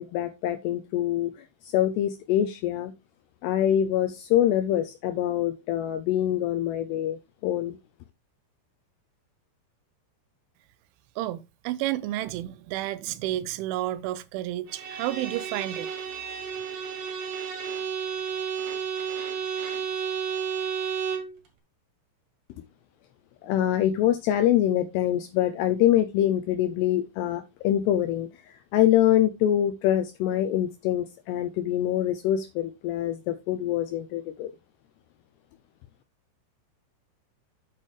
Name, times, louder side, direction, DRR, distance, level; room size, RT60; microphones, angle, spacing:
voice 1, 0.0-1.3 1.6-2.9 3.4-7.8 23.4-34.5, left 11 dB, 80° left, 2.4 m, -25 dB
voice 2, 11.2-15.9, right 14 dB, 85° right, 3.1 m, -31 dB
Bowed string instrument, 14.7-21.4, right 7 dB, 70° right, 4.3 m, -32 dB
8.5 x 8.3 x 3.2 m
omnidirectional pair, 5.4 m